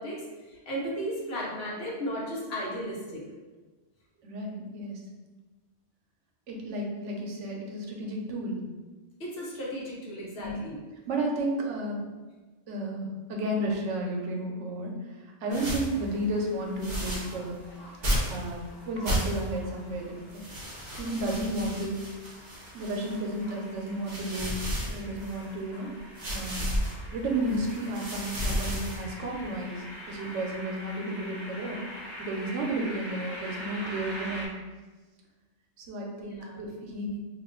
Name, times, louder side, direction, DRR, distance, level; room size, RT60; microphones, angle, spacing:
voice 1, 0.0-3.2 9.2-10.8 15.4-15.7 36.2-36.6, equal, 65° left, -4 dB, 1.0 m, -35 dB
voice 2, 4.2-5.0 6.5-8.6 10.4-10.5 11.1-12.0 12.7-17.6 18.3-20.1 21.0-22.0 22.7-25.9 26.3-26.7 27.1-31.9 32.2-34.5 35.8-37.2, right 1 dB, 80° right, 0 dB, 0.9 m, -32 dB
sound 1, 15.5-16.0 16.8-17.4 18.0-18.5 19.0-19.6 20.3-23.3 23.9-25.5 26.2-26.9 27.5-29.1, equal, 45° right, 0.7 m, -32 dB
sound 2, 15.6-34.5, equal, 25° left, 0.6 m, -45 dB
2.5 x 2.4 x 3.6 m, 1.3 s
omnidirectional pair, 1.2 m